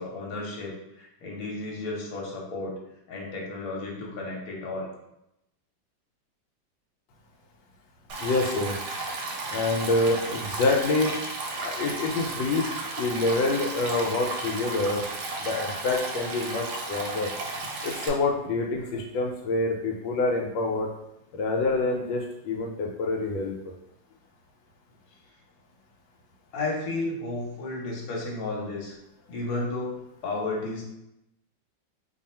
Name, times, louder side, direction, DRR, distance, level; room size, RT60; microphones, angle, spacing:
voice 1, 0.0-2.8 3.1-4.9 26.5-28.9 29.3-30.8, left 2 dB, 55° left, -3 dB, 1.2 m, -33 dB
Stream, 8.1-18.1, right 2 dB, 70° right, 1.2 m, -34 dB
voice 2, 8.2-8.8 9.5-11.1 11.6-12.6 13.0-15.0 15.4-17.3 17.8-20.9 21.3-23.5, left 3 dB, 85° left, 0 dB, 1.3 m, -26 dB
2.8 x 2.6 x 4.2 m, 0.84 s
omnidirectional pair, 2.0 m